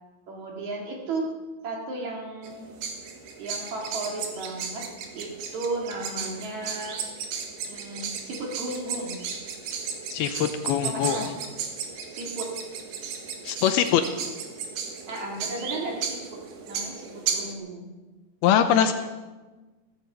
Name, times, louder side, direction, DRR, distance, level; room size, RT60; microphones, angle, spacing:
voice 1, 0.3-1.3 1.6-2.6 3.4-4.8 5.1-7.0 7.7-9.3 10.8-11.5 12.1-12.5 15.1-16.4 16.7-17.9 18.6-18.9, right 2 dB, 50° right, 0 dB, 3.0 m, -34 dB
sound 1, 2.4-17.5, right 6 dB, 70° right, 3.6 m, -35 dB
voice 2, 10.1-11.2 13.4-14.0 18.4-18.9, left 9 dB, 80° left, 8 dB, 2.5 m, -22 dB
16.0 x 14.5 x 5.6 m, 1.2 s
omnidirectional pair, 4.8 m